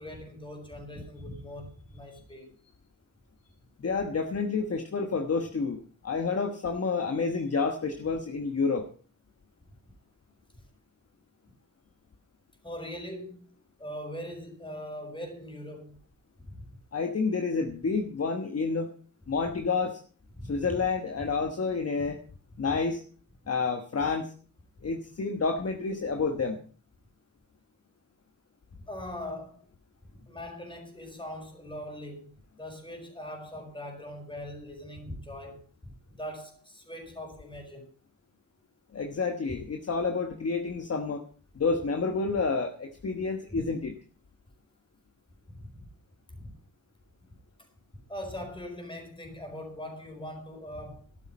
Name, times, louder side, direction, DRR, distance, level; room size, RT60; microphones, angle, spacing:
voice 1, 0.0-2.6 12.6-13.5 13.8-16.0 16.5-16.6 20.4-20.7 22.0-22.1 22.7-22.8 28.9-29.6 30.3-32.3 32.6-37.9 39.5-39.6 43.5-43.6 45.5-45.9 46.3-46.5 48.1-51.0, left 1 dB, 15° left, 4.6 m, -41 dB
voice 2, 3.8-5.8 6.0-8.9 16.9-18.9 19.3-20.0 20.5-22.2 22.6-23.0 23.5-24.3 24.8-26.6 38.9-41.2 41.5-43.9, left 4 dB, 45° left, 1.3 m, -29 dB
13.0 x 11.5 x 5.3 m
wide cardioid pair, 135°, 34 cm